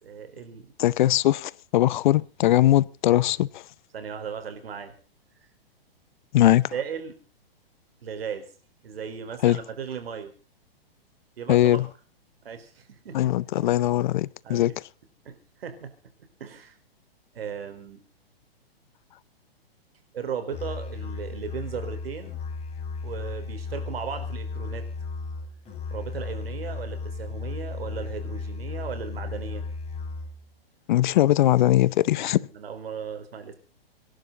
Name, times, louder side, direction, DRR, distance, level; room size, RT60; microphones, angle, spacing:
voice 1, 0.0-0.7 3.9-4.9 6.4-7.2 8.0-8.5 8.8-10.3 11.4-11.9 12.4-13.3 13.8-13.9 14.4-14.8 15.2-15.9 16.4-16.8 17.3-18.0 20.1-22.4 23.0-24.9 25.9-29.6 32.1-33.5, right 7 dB, 70° right, 4.5 m, -36 dB
voice 2, 0.8-3.6 6.3-6.6 9.4-9.6 11.5-11.9 13.1-14.7 30.9-32.4, left 14 dB, 50° left, 0.7 m, -20 dB
Musical instrument, 20.5-30.5, left 4 dB, 20° left, 6.9 m, -35 dB
25.5 x 11.5 x 4.0 m
hypercardioid pair, 125°, 30 cm